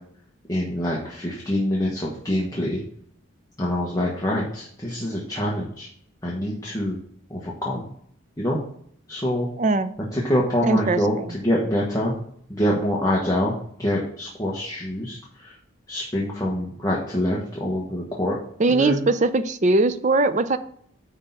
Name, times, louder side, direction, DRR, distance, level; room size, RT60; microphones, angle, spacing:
voice 1, 0.5-2.8 3.6-5.9 6.2-7.0 7.3-7.9 8.4-8.6 9.1-9.5 10.1-12.1 12.5-13.5 13.8-15.5 15.9-18.4 18.7-19.0, equal, 15° left, -4 dB, 1.2 m, -25 dB
voice 2, 9.6-9.9 10.6-11.4 18.6-20.6, right 2 dB, 35° right, 11 dB, 0.5 m, -21 dB
9.7 x 3.7 x 5.6 m, 0.64 s
head